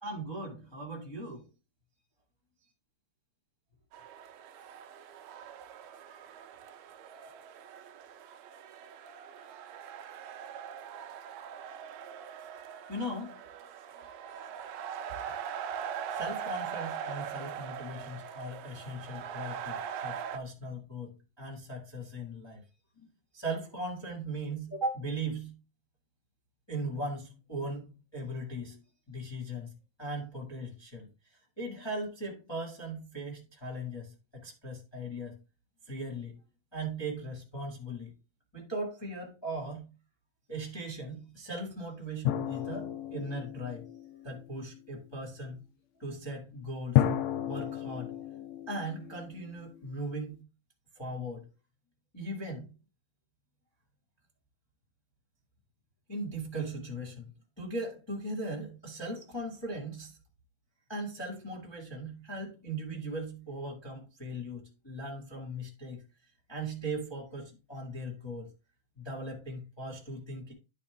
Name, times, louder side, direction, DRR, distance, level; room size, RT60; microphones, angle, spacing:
voice 1, 0.0-1.5 12.9-13.4 16.1-22.6 23.0-23.1 23.3-25.6 26.7-28.8 29.1-31.1 31.6-35.4 35.9-36.4 36.7-38.1 38.5-39.9 40.5-43.8 44.2-45.6 46.0-47.0 47.4-48.1 48.7-50.3 50.9-51.5 52.1-52.7 56.1-57.3 57.6-60.1 60.9-66.0 66.5-68.5 69.0-70.5, right 1 dB, 10° left, 0 dB, 1.4 m, -38 dB
sound 1, 3.9-20.4, right 8 dB, 75° right, 1.6 m, -41 dB
sound 2, 42.2-44.6 47.0-49.9, left 12 dB, 80° left, 1.7 m, -32 dB
10.5 x 4.9 x 3.4 m, 0.30 s
omnidirectional pair, 3.6 m